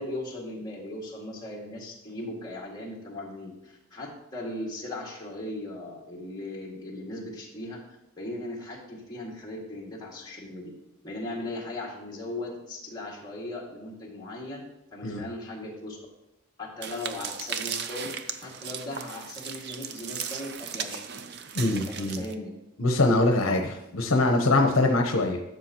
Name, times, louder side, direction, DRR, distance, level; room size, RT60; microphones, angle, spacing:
voice 1, 0.0-7.8 8.2-10.7 11.0-14.6 14.9-16.1 16.6-18.1 18.4-21.0 21.9-22.5, left 1 dB, 20° left, -3 dB, 2.0 m, -38 dB
sound 1, 16.8-22.3, right 7 dB, 50° right, 0.6 m, -36 dB
voice 2, 21.5-22.2 22.8-25.4, left 2 dB, 65° left, 3 dB, 0.8 m, -23 dB
12.0 x 6.6 x 2.9 m, 0.92 s
head